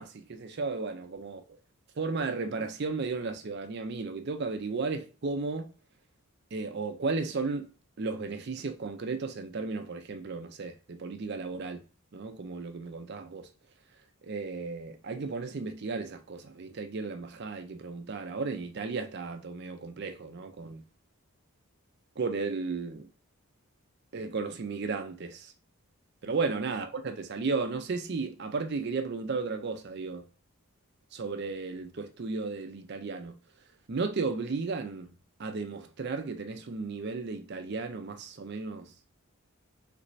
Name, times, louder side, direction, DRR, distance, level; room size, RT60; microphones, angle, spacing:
voice 1, 0.0-1.4 2.0-5.7 6.5-7.7 8.0-11.8 12.1-13.5 14.2-20.8 22.2-23.1 24.1-25.5 26.2-30.3 31.1-33.4 33.9-35.1 35.4-38.9, right 4 dB, 50° right, 0.5 m, -34 dB
3.3 x 3.1 x 2.6 m
head